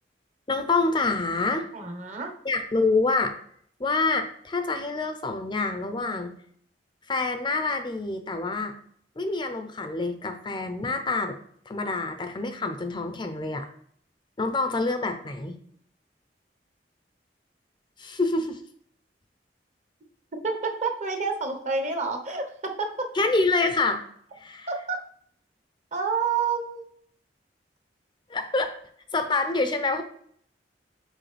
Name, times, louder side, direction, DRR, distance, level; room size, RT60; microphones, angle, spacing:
voice 1, 0.5-1.7 2.4-3.4 3.8-6.3 7.1-8.7 9.2-11.4 11.7-13.7 14.4-15.6 18.0-18.6 23.1-24.0 24.4-24.7 28.3-28.7 29.1-30.0, left 3 dB, 25° left, 7 dB, 0.5 m, -26 dB
voice 2, 1.7-2.3 20.4-23.1 24.7-25.0 25.9-26.8, right 4 dB, 45° right, 4 dB, 1.0 m, -28 dB
6.2 x 5.0 x 3.3 m, 0.63 s
head